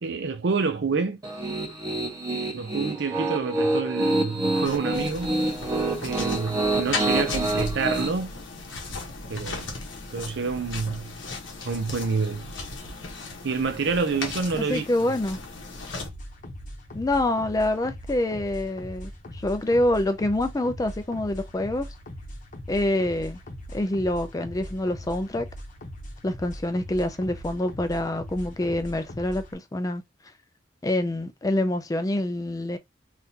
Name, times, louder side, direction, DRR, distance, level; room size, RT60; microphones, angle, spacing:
voice 1, 0.0-1.2 2.5-5.3 6.0-8.3 9.3-9.7 10.1-11.2 11.6-12.5 13.4-14.9, right 4 dB, 60° right, 0.5 m, -28 dB
Piano, 1.2-8.1, right 2 dB, 20° right, 1.0 m, -27 dB
sound 1, 4.6-16.1, left 3 dB, 85° left, 1.1 m, -36 dB
voice 2, 14.5-15.4 16.9-21.9 22.7-23.4 23.7-25.5 26.2-30.0 30.8-32.8, left 1 dB, 20° left, 0.4 m, -26 dB
sound 2, 16.0-29.5, equal, 40° left, 0.9 m, -40 dB
3.6 x 2.4 x 2.8 m
head